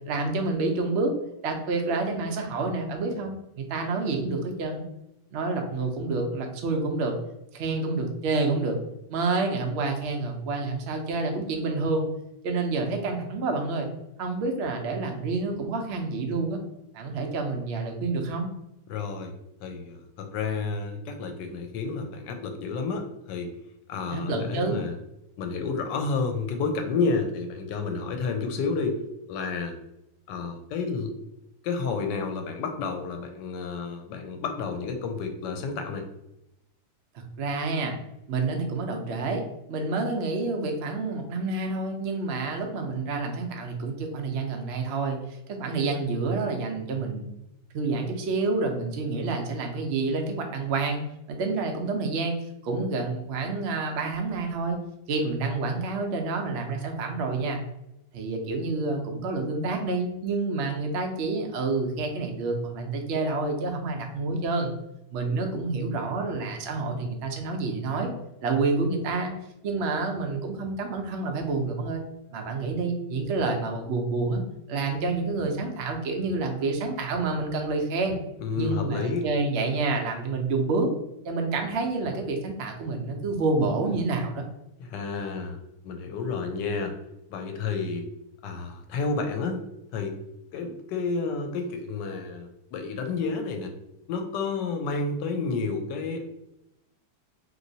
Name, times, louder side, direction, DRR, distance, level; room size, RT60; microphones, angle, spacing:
voice 1, 0.1-1.1 1.4-4.8 5.3-7.2 7.5-8.8 9.1-12.1 12.4-13.9 14.2-16.6 16.9-18.5 24.1-24.8 37.4-37.9 38.3-47.3 47.7-51.0 51.3-52.4 52.6-54.8 55.1-57.6 58.1-64.7 65.1-68.1 68.4-69.3 69.6-72.0 72.3-74.4 74.7-78.2 78.6-80.9 81.2-84.4, right 3 dB, 85° right, 3 dB, 0.5 m, -28 dB
voice 2, 18.9-19.3 19.6-23.5 23.9-24.9 25.4-29.0 29.3-29.7 30.3-31.1 31.6-36.1 78.4-79.3 84.8-85.6 85.8-86.9 87.3-88.1 88.4-89.6 89.9-90.2 90.5-93.7 94.1-96.3, left 4 dB, 90° left, 5 dB, 1.2 m, -30 dB
3.0 x 2.9 x 2.7 m, 0.85 s
omnidirectional pair, 1.8 m